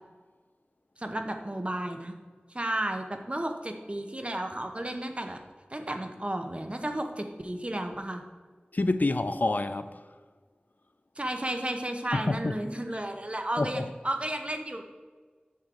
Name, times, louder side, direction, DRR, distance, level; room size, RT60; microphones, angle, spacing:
voice 1, 1.0-2.1 2.5-5.4 5.7-8.2 11.2-14.8, right 1 dB, 35° right, 0.9 m, -33 dB
voice 2, 8.7-10.1 12.1-12.6 13.6-13.9, left 2 dB, 55° left, 0.4 m, -28 dB
8.3 x 6.3 x 3.8 m
wide cardioid pair, 40°, 4 cm